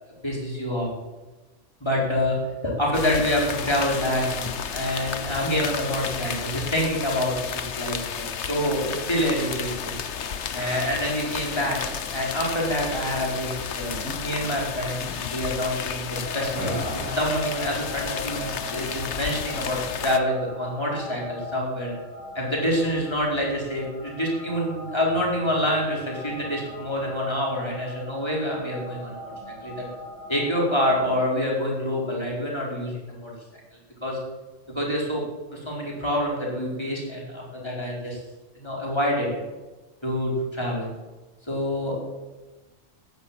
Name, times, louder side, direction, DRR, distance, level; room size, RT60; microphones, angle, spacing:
voice 1, 0.2-0.9 1.8-2.4 2.8-10.0 10.5-11.8 12.1-22.0 22.3-29.1 29.6-29.8 30.3-33.3 34.0-34.2 34.7-35.2 35.5-38.2 38.5-39.4 40.0-40.9 41.5-42.0, equal, 20° left, -3 dB, 4.9 m, -27 dB
sound 1, 2.9-20.2, left 7 dB, 65° left, 1.2 m, -32 dB
sound 2, 11.0-11.8 12.7-13.3 13.9-14.1 14.4-14.6 14.9-15.2 16.5-17.4, equal, 10° right, 7.8 m, -37 dB
sound 3, 16.1-31.3, left 1 dB, 35° right, 4.1 m, -40 dB
15.0 x 12.0 x 7.8 m, 1.2 s
omnidirectional pair, 1.3 m